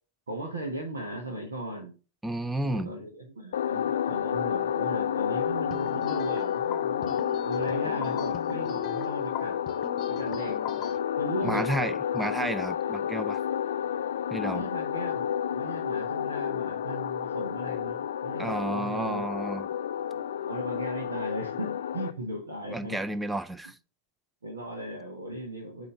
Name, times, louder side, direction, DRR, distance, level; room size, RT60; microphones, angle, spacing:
voice 1, 0.3-1.9 2.6-9.6 10.1-11.7 14.5-19.2 20.1-23.0 24.4-25.9, right 1 dB, 75° right, 1.5 m, -37 dB
voice 2, 2.2-2.9 11.4-13.4 14.3-14.6 18.4-19.8 22.7-23.8, right 1 dB, 10° right, 0.5 m, -31 dB
sound 1, 3.5-22.1, left 9 dB, 70° left, 0.4 m, -30 dB
sound 2, 5.7-11.0, left 8 dB, 35° left, 0.9 m, -40 dB
8.2 x 3.2 x 5.2 m
figure-of-eight pair, 95°, 0 cm